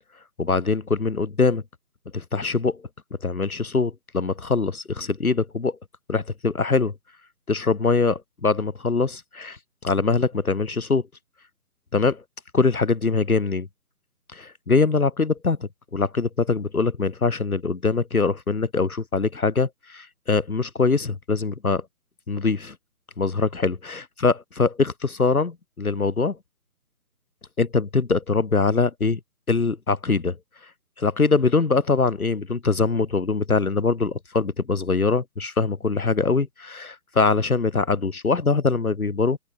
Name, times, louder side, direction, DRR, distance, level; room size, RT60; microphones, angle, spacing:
voice 1, 0.4-1.6 2.1-2.8 3.2-5.8 6.1-6.9 7.5-11.0 11.9-12.2 12.5-13.7 14.3-21.8 22.3-22.7 23.2-26.4 27.6-29.2 29.5-30.4 31.0-39.4, left 4 dB, 65° left, 1.4 m, -23 dB
open air
figure-of-eight pair, 155°, 47 cm